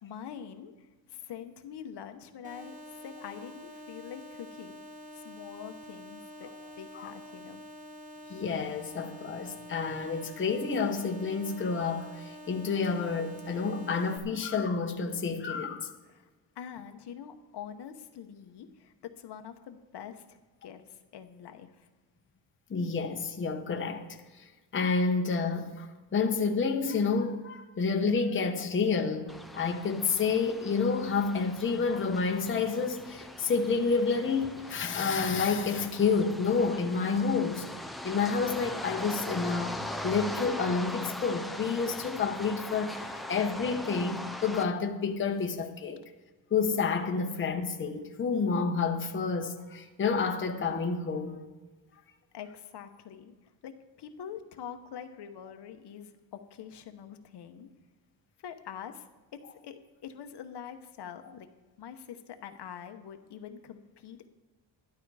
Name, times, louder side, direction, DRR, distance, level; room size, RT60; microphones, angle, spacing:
voice 1, 0.0-4.8 5.1-6.5 6.8-7.6 16.1-16.3 16.6-21.9 52.3-53.3 53.6-53.7 54.0-57.7 58.4-59.1 59.3-61.5 61.8-64.3, left 8 dB, 65° left, 0.9 m, -45 dB
sound 1, 2.4-14.2, left 1 dB, 15° right, 1.3 m, -47 dB
voice 2, 8.3-15.9 22.7-24.5 24.7-37.7 38.0-46.0 46.5-51.4, left 5 dB, 25° left, 0.9 m, -29 dB
sound 2, 29.3-44.7, left 1 dB, ahead, 0.4 m, -40 dB
12.0 x 11.5 x 4.8 m
wide cardioid pair, 170°, 44 cm